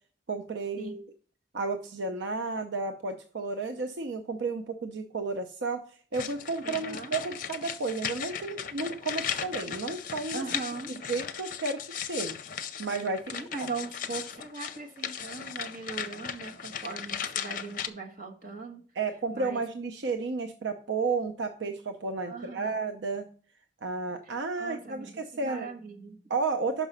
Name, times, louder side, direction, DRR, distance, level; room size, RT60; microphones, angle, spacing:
voice 1, 0.3-1.0 1.5-5.8 6.1-10.4 10.9-12.4 12.8-13.3 13.6-13.7 19.0-23.3 23.8-25.7 26.3-26.9, right 3 dB, 80° right, 7 dB, 0.6 m, -32 dB
sound 1, 6.1-17.9, left 8 dB, 50° left, 0.6 m, -37 dB
voice 2, 6.6-7.1 10.3-11.0 13.3-18.8 19.3-19.6 22.2-22.8 24.2-26.2, right 4 dB, 50° right, 2 dB, 1.4 m, -40 dB
6.0 x 4.9 x 5.5 m, 0.44 s
head